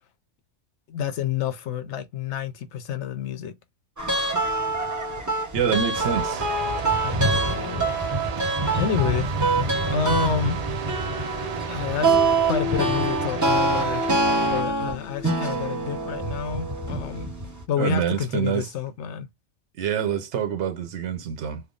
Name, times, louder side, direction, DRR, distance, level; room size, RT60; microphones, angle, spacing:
voice 1, 0.9-3.5 7.0-7.9 8.8-9.3 9.9-10.6 11.7-12.2 12.4-14.1 14.4-17.3 17.7-19.3, left 7 dB, 75° left, 1.0 m, -29 dB
sound 1, 4.0-17.6, right 2 dB, 20° right, 0.7 m, -25 dB
voice 2, 5.5-6.5 17.8-18.7 19.8-21.6, right 8 dB, 75° right, 1.0 m, -26 dB
sound 2, 5.9-14.6, right 7 dB, 60° right, 0.4 m, -32 dB
3.5 x 2.1 x 3.7 m
omnidirectional pair, 1.2 m